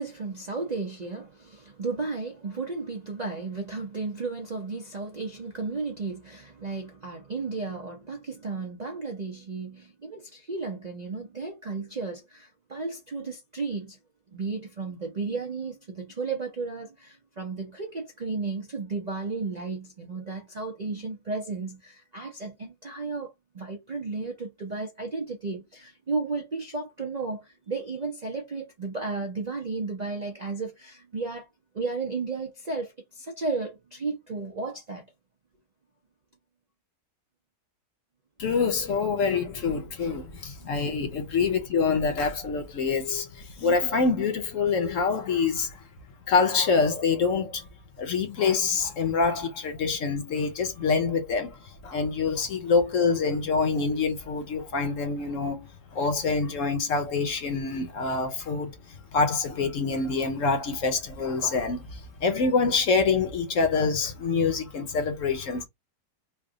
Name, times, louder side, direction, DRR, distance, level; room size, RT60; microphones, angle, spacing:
voice 1, 0.0-14.0 14.3-31.5 31.7-35.1 40.6-40.9 41.4-41.5, right 3 dB, 55° right, 0.4 m, -34 dB
voice 2, 38.4-45.8 46.3-47.7 48.0-65.6, left 4 dB, 60° left, 1.1 m, -26 dB
3.4 x 2.3 x 3.6 m
omnidirectional pair, 1.7 m